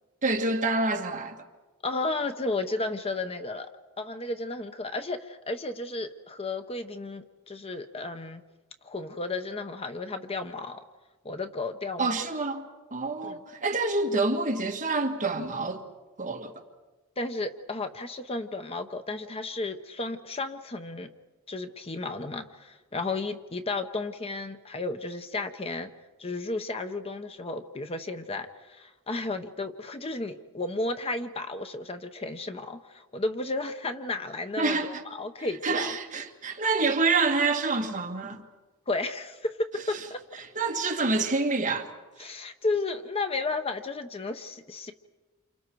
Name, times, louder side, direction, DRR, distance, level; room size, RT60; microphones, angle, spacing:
voice 1, 0.2-1.4 12.0-15.8 16.2-16.5 34.6-35.0 35.6-38.4 40.6-41.9 42.2-42.3, right 3 dB, 35° right, 2.0 m, -27 dB
voice 2, 1.8-3.7 4.0-8.4 8.8-10.8 11.2-12.2 13.2-13.4 17.2-21.1 21.5-25.9 26.2-36.0 38.9-40.2 42.2-44.9, left 2 dB, 25° left, 0.9 m, -33 dB
29.0 x 28.5 x 4.7 m
head